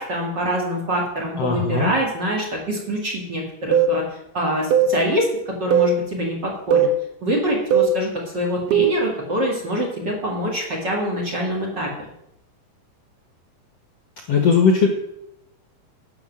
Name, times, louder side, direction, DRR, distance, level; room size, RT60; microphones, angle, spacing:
voice 1, 0.0-4.0 4.3-6.9 7.2-11.9, equal, 35° right, -1 dB, 2.7 m, -25 dB
voice 2, 1.4-1.9 14.3-14.9, left 5 dB, 60° left, 3 dB, 1.9 m, -18 dB
sound 1, 3.7-4.0 4.7-5.0 5.7-6.0 6.7-7.0 7.7-8.0 8.7-9.0, right 6 dB, 85° right, 2.9 m, -17 dB
11.5 x 6.1 x 7.8 m, 0.82 s
omnidirectional pair, 4.2 m